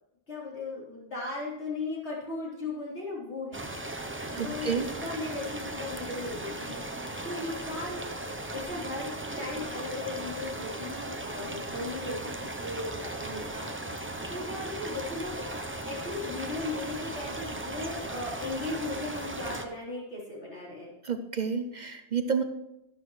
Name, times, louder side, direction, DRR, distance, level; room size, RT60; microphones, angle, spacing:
voice 1, 0.3-3.6 4.4-6.8 7.2-13.7 14.3-20.9, left 2 dB, 75° left, -6 dB, 4.1 m, -37 dB
sound 1, 3.5-19.7, right 1 dB, 15° right, 0.5 m, -37 dB
voice 2, 4.4-4.9 21.0-22.4, right 6 dB, 50° right, 8 dB, 0.7 m, -30 dB
12.0 x 11.5 x 3.2 m, 0.85 s
omnidirectional pair, 1.1 m